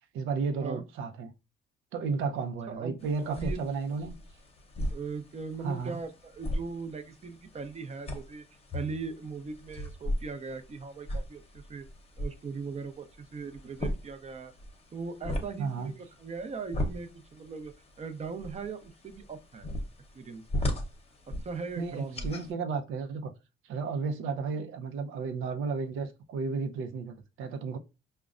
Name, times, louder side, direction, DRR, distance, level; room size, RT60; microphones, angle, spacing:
voice 1, 0.1-1.3 1.9-4.1 5.6-6.0 15.6-15.9 21.8-23.3 23.6-27.8, right 5 dB, 90° right, 0.6 m, -33 dB
voice 2, 2.7-3.6 4.9-8.4 8.7-11.9 12.2-14.5 14.9-19.7 20.1-20.4 21.4-22.3, right 4 dB, 35° right, 0.6 m, -39 dB
sound 1, 3.0-22.5, left 1 dB, 30° left, 0.8 m, -38 dB
5.0 x 2.2 x 2.4 m
cardioid pair, 90°, 20 cm